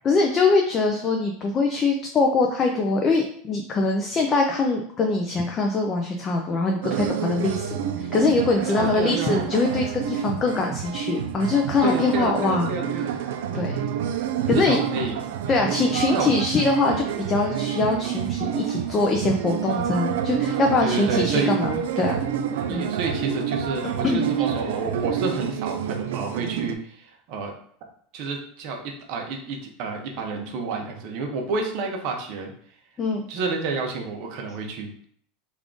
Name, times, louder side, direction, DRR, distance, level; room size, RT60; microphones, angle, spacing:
voice 1, 0.0-12.7 13.5-13.8 14.1-14.2 14.5-14.8 15.5-22.2 22.7-22.9 24.1-24.3 33.0-33.3, left 3 dB, 20° left, 2 dB, 0.3 m, -23 dB
sound 1, 6.8-26.7, right 9 dB, 75° right, 0.3 m, -28 dB
voice 2, 8.8-9.4 11.8-13.2 14.5-15.2 16.1-16.3 20.8-21.6 22.7-27.5 28.1-32.5 33.3-35.0, right 4 dB, 45° right, 2 dB, 0.7 m, -29 dB
3.5 x 2.4 x 3.7 m, 0.62 s
supercardioid pair, 170°, 0 cm